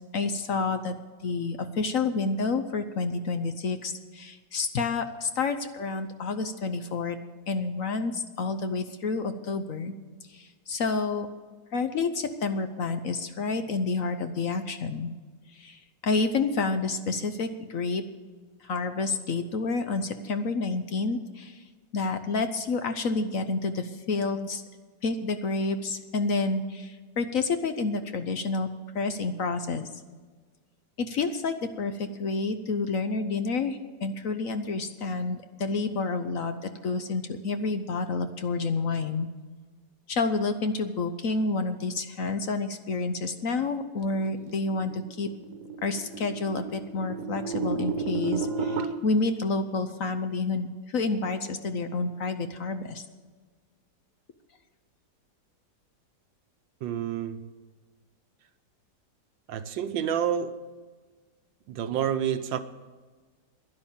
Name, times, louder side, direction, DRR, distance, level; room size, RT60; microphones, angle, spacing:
voice 1, 0.1-0.9 1.2-7.2 7.5-9.9 10.3-11.3 11.7-15.1 15.5-18.0 18.6-21.6 21.9-24.6 25.0-28.7 28.9-29.9 31.0-39.3 40.1-45.3 45.8-53.0, left 3 dB, 55° left, 1.0 m, -29 dB
sound 1, 44.1-48.9, right 4 dB, 65° right, 1.5 m, -33 dB
voice 2, 56.8-57.5 59.5-60.6 61.7-62.6, right 9 dB, 85° right, 1.6 m, -29 dB
11.5 x 11.0 x 7.3 m
omnidirectional pair, 2.0 m